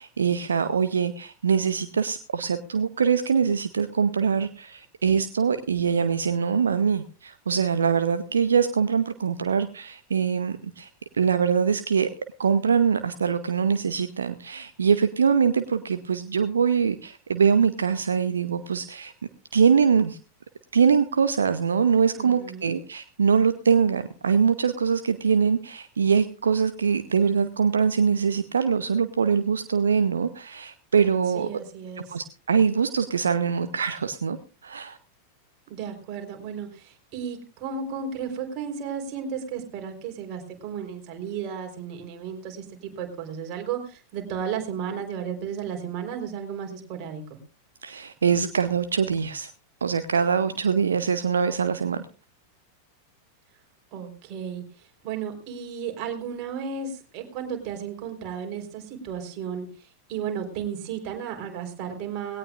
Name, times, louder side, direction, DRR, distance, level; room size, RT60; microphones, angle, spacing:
voice 1, 0.0-12.1 12.4-19.1 19.5-20.2 20.7-31.5 32.1-34.4 34.6-35.0 47.8-49.5 49.8-52.0, right 6 dB, 70° right, 11 dB, 0.8 m, -23 dB
voice 2, 22.1-22.7 31.3-32.2 35.7-47.4 53.9-62.4, right 7 dB, 40° right, 4 dB, 4.0 m, -34 dB
19.5 x 17.5 x 2.5 m, 0.34 s
figure-of-eight pair, 90°, 0 cm